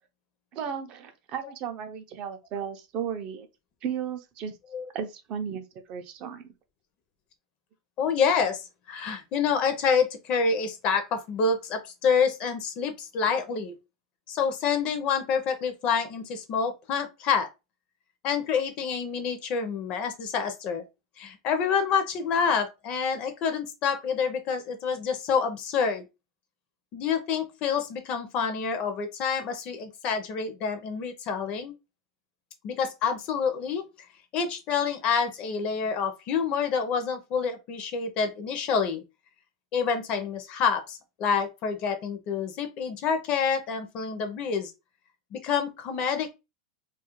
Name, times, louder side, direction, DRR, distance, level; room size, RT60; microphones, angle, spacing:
voice 1, 0.5-3.5 3.8-4.5 4.9-6.5, right 8 dB, 40° right, 0.4 m, -35 dB
voice 2, 8.0-13.7 14.3-17.5 18.2-20.8 21.2-26.0 26.9-31.7 32.6-33.8 34.3-39.0 39.7-44.7 45.3-46.3, left 6 dB, 40° left, 0.5 m, -27 dB
2.3 x 2.1 x 2.9 m
supercardioid pair, 145°, 3 cm